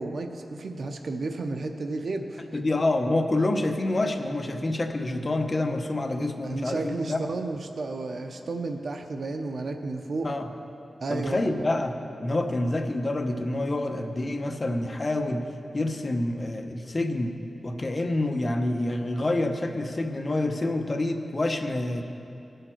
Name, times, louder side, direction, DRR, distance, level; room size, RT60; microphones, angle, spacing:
voice 1, 0.0-2.4 6.4-10.3 11.0-11.7, right 3 dB, 70° right, 5 dB, 0.7 m, -32 dB
voice 2, 2.5-7.2 10.2-10.5 11.1-15.5 15.7-17.4 17.6-22.0, left 2 dB, 35° left, 5 dB, 0.8 m, -27 dB
18.0 x 6.5 x 4.5 m, 2.7 s
wide cardioid pair, 95°, 0 cm